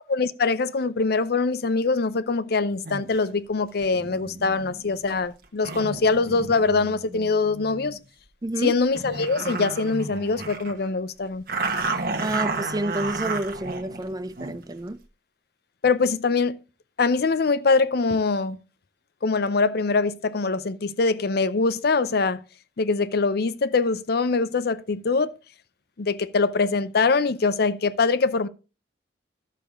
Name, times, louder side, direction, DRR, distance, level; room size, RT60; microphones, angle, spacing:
voice 1, 0.1-8.0 8.6-11.4 15.8-16.6 17.0-18.6 19.2-22.4 22.8-25.4 26.0-28.5, left 4 dB, 60° left, 0.6 m, -23 dB
sound 1, 2.8-3.2 3.8-8.0 8.5-8.6 8.9-10.9 11.5-14.6, right 3 dB, 55° right, 1.3 m, -32 dB
voice 2, 8.4-8.7 12.2-15.0, right 1 dB, 20° right, 0.6 m, -29 dB
12.5 x 6.9 x 3.7 m
head